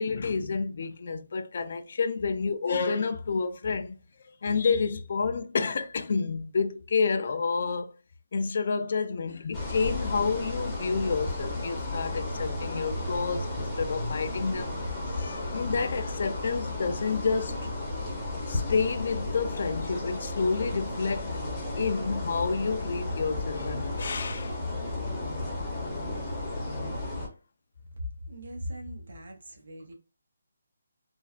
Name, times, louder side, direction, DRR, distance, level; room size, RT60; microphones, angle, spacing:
voice 1, 0.0-4.0 4.2-7.9 8.3-14.8 15.1-17.8 18.5-21.4 21.8-24.6, left 5 dB, 40° left, 0.3 m, -29 dB
sound 1, 9.5-27.3, left 2 dB, 10° left, 0.7 m, -33 dB
voice 2, 27.9-29.9, equal, 65° right, 1.0 m, -39 dB
3.2 x 2.2 x 2.4 m
hypercardioid pair, 175°, 0 cm